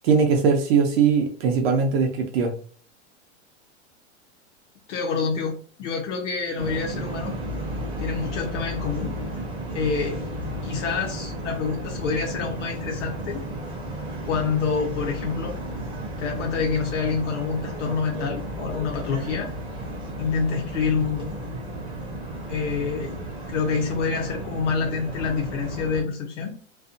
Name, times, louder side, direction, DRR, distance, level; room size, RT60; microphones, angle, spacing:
voice 1, 0.0-2.5, right 5 dB, 55° right, 3 dB, 0.7 m, -20 dB
voice 2, 4.9-7.4 8.0-9.2 9.7-10.2 10.6-13.4 14.2-15.6 16.2-19.5 20.2-21.3 22.5-23.2 23.5-26.6, left 5 dB, 80° left, 0 dB, 0.8 m, -27 dB
sound 1, 6.6-26.0, right 1 dB, 15° right, 0.5 m, -33 dB
2.5 x 2.3 x 2.5 m, 0.42 s
supercardioid pair, 145°, 35 cm